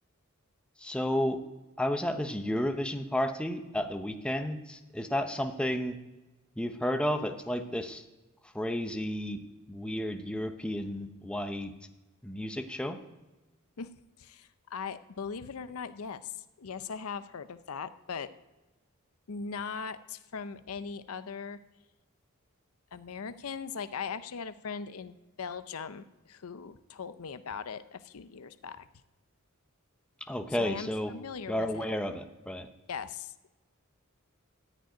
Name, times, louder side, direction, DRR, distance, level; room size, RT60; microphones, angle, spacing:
voice 1, 0.8-1.4 1.8-6.0 6.6-8.0 8.5-9.4 9.7-11.7 12.2-13.0 30.3-31.1 31.5-32.7, left 1 dB, 5° left, 6 dB, 0.7 m, -32 dB
voice 2, 14.2-16.3 16.6-18.3 19.3-21.6 22.9-28.9 30.6-31.8 32.9-33.5, left 6 dB, 80° left, 12 dB, 0.6 m, -39 dB
14.0 x 5.2 x 9.2 m, 1.1 s
head